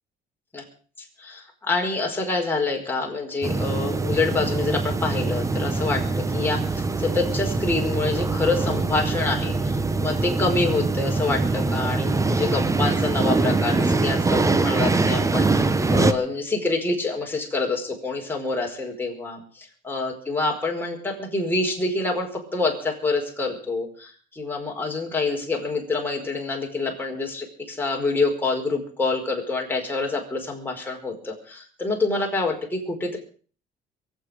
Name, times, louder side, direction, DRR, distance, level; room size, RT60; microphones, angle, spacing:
voice 1, 1.0-33.2, left 3 dB, 10° left, 0 dB, 4.9 m, -27 dB
sound 1, 3.4-16.1, right 3 dB, 20° right, 1.1 m, -23 dB
23.5 x 8.1 x 6.4 m, 0.42 s
cardioid pair, 110°, 17 cm